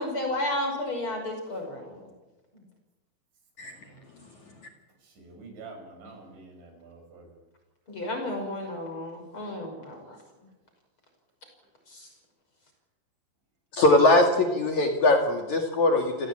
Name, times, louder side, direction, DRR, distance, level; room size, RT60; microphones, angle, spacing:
voice 1, 0.0-2.0 7.9-10.2, left 1 dB, 30° left, 4 dB, 6.1 m, -32 dB
voice 2, 5.0-7.3, right 3 dB, 80° right, 4 dB, 8.4 m, -47 dB
voice 3, 13.7-16.3, left 2 dB, 50° left, 3 dB, 3.0 m, -21 dB
29.0 x 17.5 x 8.9 m, 1.1 s
omnidirectional pair, 5.2 m